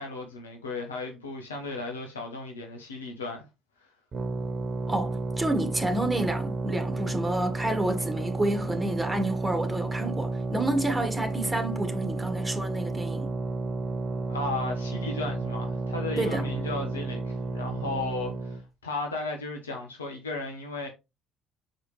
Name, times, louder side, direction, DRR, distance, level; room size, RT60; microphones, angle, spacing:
voice 1, 0.0-3.4 14.3-20.9, left 3 dB, 85° left, 1.2 m, -35 dB
sound 1, 4.1-18.6, right 3 dB, 40° right, 1.3 m, -32 dB
voice 2, 4.9-13.3 16.2-16.5, right 1 dB, 15° right, 1.7 m, -29 dB
6.4 x 4.8 x 3.3 m
hypercardioid pair, 50°, 0 cm